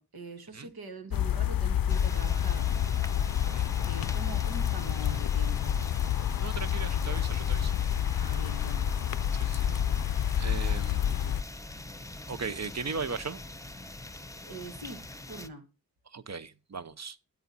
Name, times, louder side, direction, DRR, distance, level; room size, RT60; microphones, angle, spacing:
voice 1, 0.0-2.7 3.9-5.8 8.2-8.9 14.5-15.7, right 2 dB, 80° right, 2.0 m, -43 dB
sound 1, 1.1-11.4, left 10 dB, 65° left, 0.5 m, -28 dB
sound 2, 1.9-15.5, left 2 dB, 10° left, 0.9 m, -43 dB
voice 2, 6.4-7.7 9.3-9.7 10.4-11.3 12.3-13.4 16.1-17.2, right 5 dB, 45° right, 0.8 m, -38 dB
9.2 x 8.5 x 4.1 m
cardioid pair, 45°, 37 cm